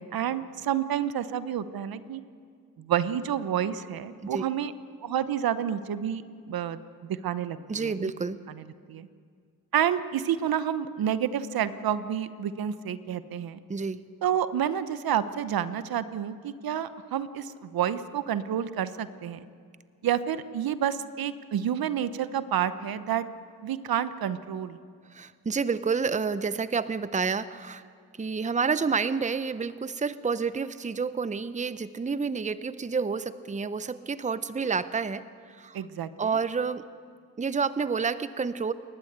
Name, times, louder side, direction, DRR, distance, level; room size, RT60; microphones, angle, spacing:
voice 1, 0.0-2.2 2.8-4.7 5.0-6.2 6.5-8.1 8.5-9.1 9.7-13.6 14.2-19.4 20.0-23.3 23.6-24.8 35.7-36.4, right 9 dB, 70° right, 13 dB, 1.0 m, -29 dB
voice 2, 7.7-8.4 13.7-14.0 25.1-27.8 28.2-35.8 36.2-36.9 37.4-38.7, right 5 dB, 20° right, 14 dB, 0.8 m, -29 dB
28.5 x 12.0 x 8.1 m, 2.2 s
cardioid pair, 65°, 37 cm